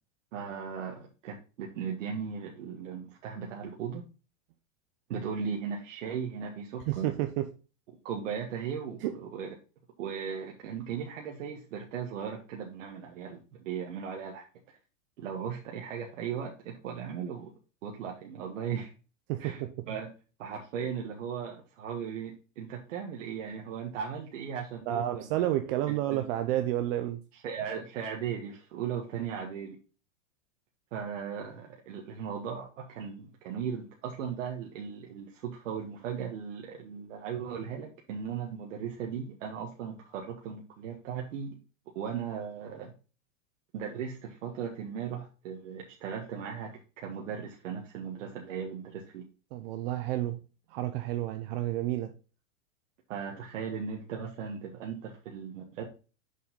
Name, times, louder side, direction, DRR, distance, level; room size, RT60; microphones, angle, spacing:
voice 1, 0.3-4.0 5.1-7.1 8.0-9.5 10.0-14.4 15.2-17.5 17.8-18.9 19.4-20.1 20.4-25.4 26.1-26.2 27.4-29.7 30.9-41.6 41.9-42.9 43.7-49.3 53.1-55.8, right 7 dB, 75° right, 1.6 m, -37 dB
voice 2, 6.9-7.5 9.0-9.2 19.3-19.9 24.9-27.2 29.1-29.2 49.5-50.4 50.7-52.1, right 13 dB, 50° right, 0.7 m, -30 dB
6.6 x 5.5 x 3.7 m
supercardioid pair, 145°, 38 cm